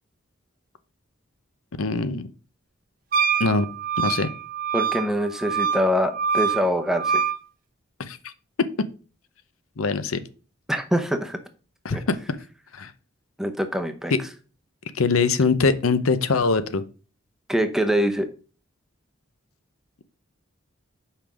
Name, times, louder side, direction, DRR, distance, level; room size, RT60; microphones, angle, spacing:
voice 1, 1.8-2.3 3.4-3.7 4.0-4.3 8.0-8.2 9.8-10.2 11.8-12.2 12.7-12.9 14.1-14.2 14.9-16.8, left 4 dB, 90° left, 13 dB, 0.7 m, -22 dB
Wind instrument woodwind instrument, 3.1-7.4, right 6 dB, 45° right, 0.6 m, -25 dB
voice 2, 4.7-7.2 10.7-11.4 11.9-12.0 13.4-14.1 17.5-18.3, equal, ahead, 7 dB, 0.6 m, -24 dB
5.7 x 5.1 x 6.1 m, 0.37 s
head